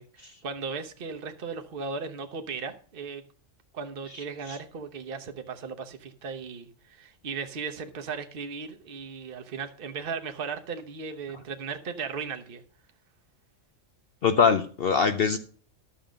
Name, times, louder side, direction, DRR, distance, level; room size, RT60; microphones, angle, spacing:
voice 1, 0.0-3.2 3.7-12.6, right 5 dB, 45° right, 1.2 m, -36 dB
voice 2, 14.2-15.4, left 6 dB, 55° left, 0.8 m, -22 dB
11.5 x 7.0 x 5.1 m
omnidirectional pair, 1.3 m